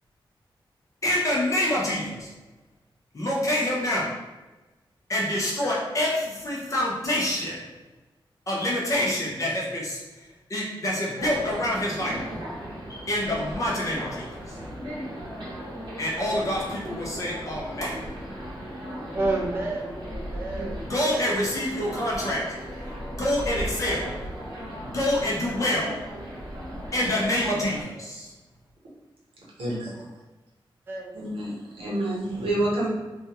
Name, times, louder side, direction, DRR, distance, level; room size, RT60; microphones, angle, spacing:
voice 1, 1.0-2.3 3.1-4.2 5.1-7.6 8.5-12.2 12.9-14.6 16.0-18.0 20.8-22.5 23.2-24.1 24.6-26.0 26.9-28.3, left 1 dB, 35° left, -4 dB, 0.6 m, -27 dB
sound 1, 11.2-27.8, equal, 60° right, 0.8 m, -37 dB
voice 2, 19.1-20.9 30.9-31.3, right 2 dB, 25° right, -3 dB, 0.5 m, -30 dB
voice 3, 31.1-32.9, right 1 dB, 85° right, -6 dB, 0.9 m, -28 dB
2.3 x 2.1 x 2.8 m, 1.2 s
wide cardioid pair, 170°, 9 cm